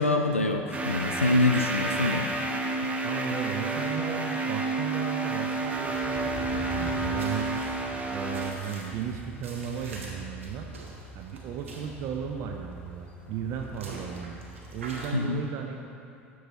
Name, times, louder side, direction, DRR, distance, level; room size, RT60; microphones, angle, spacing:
voice 1, 0.0-2.3 15.1-15.4, left 2 dB, 90° left, 5 dB, 0.4 m, -25 dB
sound 1, 0.7-8.5, right 3 dB, 20° right, 0.9 m, -30 dB
voice 2, 3.0-7.5 8.1-10.7 11.2-14.4 14.7-15.8, right 8 dB, 45° right, 3 dB, 0.5 m, -35 dB
sound 2, 5.6-15.1, left 1 dB, 15° left, 1.2 m, -43 dB
sound 3, 7.2-12.2 12.6-12.7 13.4-15.2, right 2 dB, 75° right, 1.2 m, -45 dB
12.5 x 4.7 x 4.1 m, 2.5 s
figure-of-eight pair, 70°, 7 cm